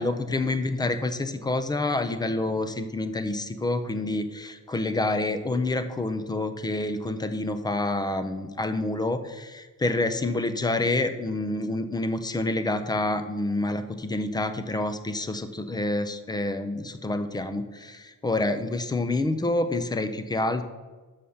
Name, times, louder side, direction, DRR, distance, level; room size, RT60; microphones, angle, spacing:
voice 1, 0.0-20.6, left 2 dB, 10° left, 10 dB, 0.3 m, -28 dB
7.0 x 5.6 x 6.4 m, 1.3 s
cardioid pair, 175°, 35 cm